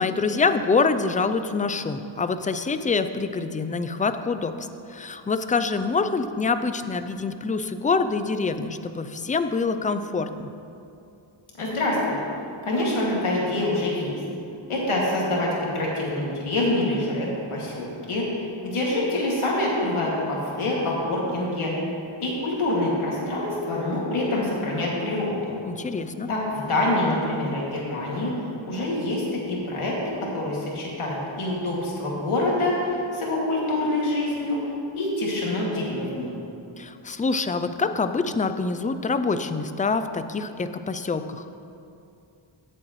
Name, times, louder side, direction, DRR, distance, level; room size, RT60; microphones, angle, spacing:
voice 1, 0.0-10.5 25.6-26.3 36.8-41.4, left 4 dB, 20° left, 10 dB, 0.3 m, -25 dB
voice 2, 11.6-12.2 12.6-14.1 14.7-21.9 22.2-25.3 26.3-28.3 28.6-34.6 35.0-36.3, left 1 dB, 80° left, -4 dB, 2.4 m, -26 dB
16.5 x 7.6 x 3.1 m, 2.6 s
wide cardioid pair, 105°, 49 cm